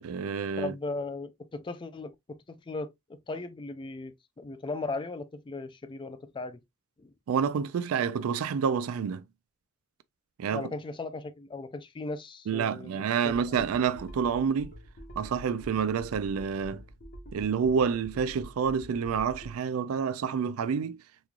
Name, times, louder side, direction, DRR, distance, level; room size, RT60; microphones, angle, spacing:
voice 1, 0.0-0.7 7.3-9.2 10.4-10.7 12.5-14.7 15.2-16.8 17.3-21.0, right 6 dB, 80° right, 0.3 m, -28 dB
voice 2, 0.6-6.6 7.0-7.1 10.5-13.6, left 3 dB, 25° left, 0.3 m, -37 dB
sound 1, 13.2-19.6, right 1 dB, 50° left, 1.2 m, -47 dB
3.6 x 3.1 x 2.3 m
head